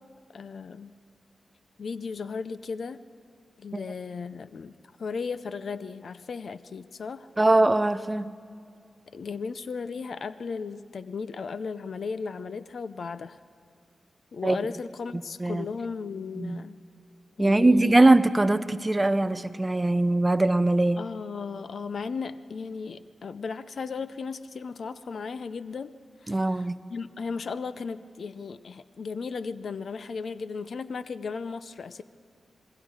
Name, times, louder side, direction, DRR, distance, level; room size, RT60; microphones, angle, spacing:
voice 1, 0.3-0.9 1.8-3.0 3.6-7.3 9.1-13.4 14.3-16.8 17.4-17.9 21.0-32.0, left 5 dB, 65° left, 14 dB, 0.6 m, -36 dB
voice 2, 7.4-8.3 14.4-14.6 15.4-15.6 16.4-16.6 17.4-21.0 26.3-26.8, right 2 dB, 20° right, 13 dB, 0.6 m, -21 dB
27.0 x 21.5 x 4.8 m, 2.3 s
wide cardioid pair, 110°, 0 cm